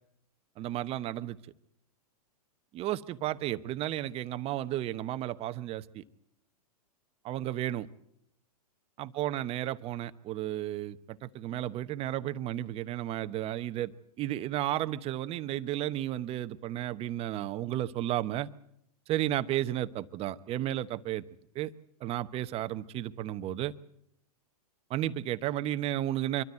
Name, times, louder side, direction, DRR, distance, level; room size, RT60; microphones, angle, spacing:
voice 1, 0.6-1.4 2.7-6.0 7.2-7.9 9.0-13.9 14.2-18.5 19.1-21.2 21.5-21.7 22.0-23.7 24.9-26.4, right 13 dB, 30° right, 1.0 m, -33 dB
25.0 x 13.0 x 9.5 m
hypercardioid pair, 115°, 20 cm